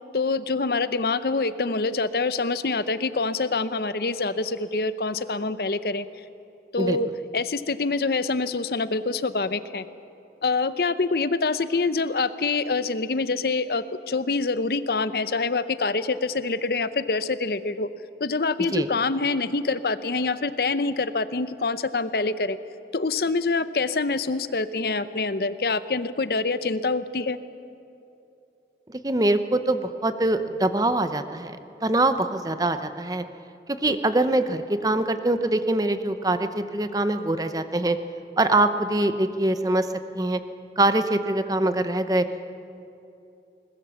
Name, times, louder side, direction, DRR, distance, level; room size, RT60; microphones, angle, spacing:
voice 1, 0.1-6.0 6.7-7.1 7.3-9.9 10.4-17.9 18.2-22.6 22.9-27.4 33.9-34.0, left 3 dB, 60° left, 14 dB, 0.7 m, -25 dB
voice 2, 29.0-31.6 31.8-33.2 33.8-38.0 38.4-39.9 40.1-40.4 40.8-42.2, right 2 dB, 20° right, 10 dB, 0.7 m, -23 dB
21.5 x 20.0 x 7.1 m, 2.8 s
head